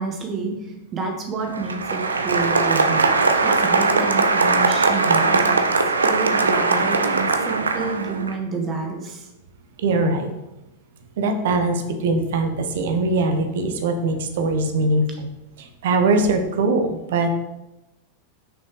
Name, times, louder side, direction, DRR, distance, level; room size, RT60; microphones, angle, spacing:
voice 1, 0.0-3.1 3.4-9.3 15.1-15.2, right 4 dB, 25° right, 3 dB, 1.6 m, -29 dB
Applause, 1.4-8.3, right 3 dB, 75° right, 0.6 m, -20 dB
voice 2, 9.8-10.3 11.2-15.3 15.8-17.3, right 2 dB, 55° right, 6 dB, 1.0 m, -21 dB
6.4 x 5.4 x 4.9 m, 0.93 s
figure-of-eight pair, 90°, 0 cm